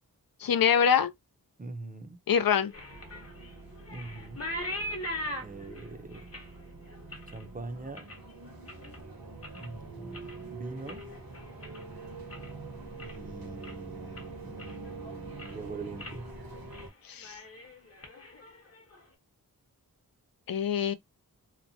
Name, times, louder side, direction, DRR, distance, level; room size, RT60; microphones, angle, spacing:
voice 1, 0.4-1.1 2.3-2.7 17.0-17.4 20.5-20.9, left 8 dB, 70° left, 0.5 m, -24 dB
voice 2, 1.6-2.2 3.9-4.4 5.4-6.3 7.3-8.1 9.5-11.0 13.0-16.3, right 3 dB, 25° right, 0.6 m, -43 dB
sound 1, 2.3-9.0 9.3-9.8 10.1-12.6 12.9-13.3 13.6-13.7 14.2-15.0 15.2-15.6 16.0-16.2 16.5-16.9 17.1-19.0, left 1 dB, 40° left, 1.0 m, -41 dB
sound 2, 2.9-16.9, right 3 dB, 70° right, 1.0 m, -45 dB
2.9 x 2.1 x 2.6 m
wide cardioid pair, 80°, 36 cm